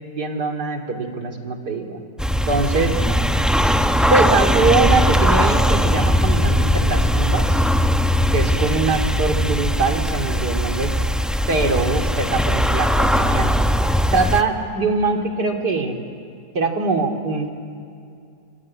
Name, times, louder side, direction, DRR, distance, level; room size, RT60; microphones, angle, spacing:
voice 1, 0.1-2.0 2.5-3.0 4.1-7.5 8.3-10.9 11.5-13.5 14.1-16.0 16.5-17.5, right 3 dB, 80° right, 3 dB, 3.2 m, -22 dB
sound 1, 2.2-14.4, equal, ahead, 0.6 m, -19 dB
25.5 x 24.0 x 9.7 m, 2.4 s
omnidirectional pair, 1.7 m